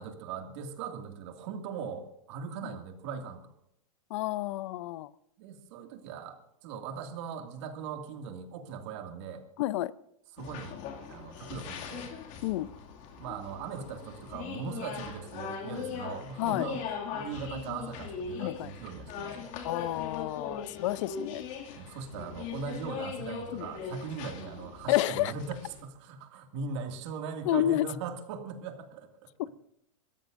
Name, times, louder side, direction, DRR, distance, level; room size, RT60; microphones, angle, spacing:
voice 1, 0.0-3.4 5.4-9.4 10.3-10.8 11.1-12.1 13.2-16.9 17.1-19.5 21.7-29.3, right 6 dB, 60° right, 5 dB, 2.3 m, -40 dB
voice 2, 4.1-5.1 9.6-9.9 12.4-12.7 16.4-16.7 18.4-18.7 19.6-21.4 23.5-23.7 24.9-25.3 27.5-27.9, left 15 dB, 60° left, 18 dB, 0.7 m, -30 dB
sound 1, 10.4-25.8, left 6 dB, 45° left, 2.4 m, -40 dB
27.0 x 14.0 x 2.6 m, 0.78 s
supercardioid pair, 140°, 17 cm